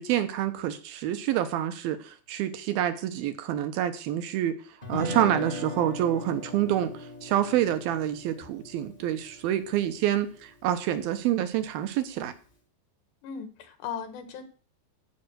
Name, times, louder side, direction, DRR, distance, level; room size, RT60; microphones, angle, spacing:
voice 1, 0.0-4.6 4.9-12.3, right 11 dB, 70° right, 9 dB, 2.5 m, -27 dB
Guitar, 4.8-10.9, left 1 dB, 30° left, 1.0 m, -39 dB
voice 2, 13.2-14.4, left 7 dB, 75° left, 8 dB, 3.4 m, -37 dB
15.5 x 5.5 x 6.3 m, 0.39 s
omnidirectional pair, 5.2 m